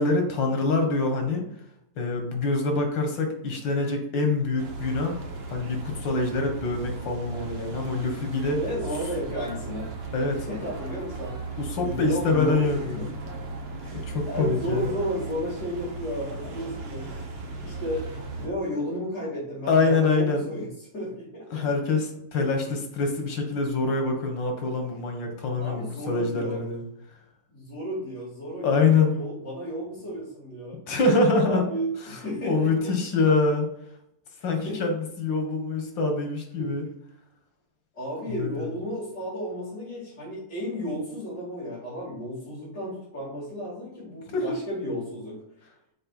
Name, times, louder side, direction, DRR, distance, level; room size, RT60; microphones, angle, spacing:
voice 1, 0.0-1.4 2.0-5.2 5.5-8.6 10.1-10.5 11.6-13.1 13.9-14.9 19.7-20.4 21.5-26.8 28.6-29.1 30.9-31.6 32.1-32.2 32.5-33.7 34.4-36.9 38.3-38.7 44.3-44.6, left 3 dB, 85° left, 4 dB, 2.2 m, -25 dB
sound 1, 4.6-18.5, right 3 dB, 40° right, 1.2 m, -37 dB
voice 2, 8.6-9.9 10.3-13.0 13.8-14.0 14.3-17.1 17.6-18.1 18.4-20.7 20.9-21.7 22.4-22.5 25.6-26.6 27.5-30.8 31.4-32.9 34.7-34.8 36.6-36.7 37.9-45.4, equal, 65° left, -9 dB, 3.8 m, -33 dB
6.6 x 4.6 x 5.9 m, 0.78 s
omnidirectional pair, 2.0 m